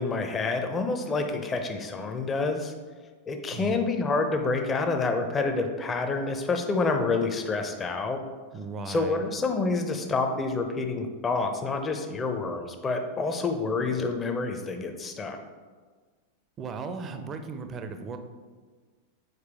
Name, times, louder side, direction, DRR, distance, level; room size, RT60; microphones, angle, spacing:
voice 1, 0.0-2.7 3.3-8.2 8.9-15.4, left 3 dB, 20° left, 5 dB, 0.6 m, -28 dB
voice 2, 3.5-3.9 8.5-9.3 16.6-18.2, right 4 dB, 25° right, 7 dB, 0.6 m, -36 dB
6.6 x 4.6 x 3.5 m, 1.5 s
figure-of-eight pair, 90°, 0 cm